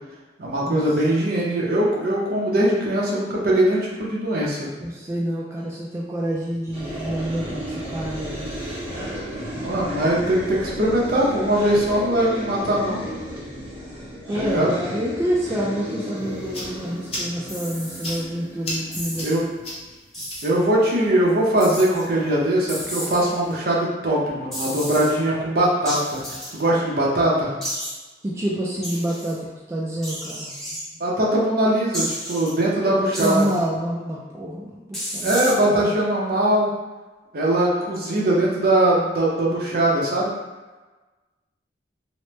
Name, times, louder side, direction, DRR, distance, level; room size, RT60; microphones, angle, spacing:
voice 1, 0.4-4.7 9.6-13.0 14.3-14.7 19.2-19.5 20.4-26.2 26.5-27.5 31.0-33.4 35.2-36.7 37.3-40.3, right 1 dB, 55° right, -4 dB, 0.7 m, -21 dB
voice 2, 4.8-8.5 14.3-19.4 28.2-30.5 33.2-35.4 35.7-36.0, equal, 15° right, -5 dB, 0.3 m, -27 dB
sound 1, 6.7-19.6, right 1 dB, 35° right, 1.2 m, -34 dB
sound 2, 16.2-23.6, left 1 dB, 35° left, 0.7 m, -38 dB
sound 3, 17.5-18.2 18.9-19.4 20.1-20.5 21.6-22.0 22.7-23.3 24.5-25.1 25.9-26.6 27.6-27.9 28.8-29.4 30.0-30.8 31.9-32.5 33.1-33.6 34.9-35.5, equal, ahead, 0.8 m, -32 dB
3.1 x 2.1 x 3.0 m, 1.2 s
head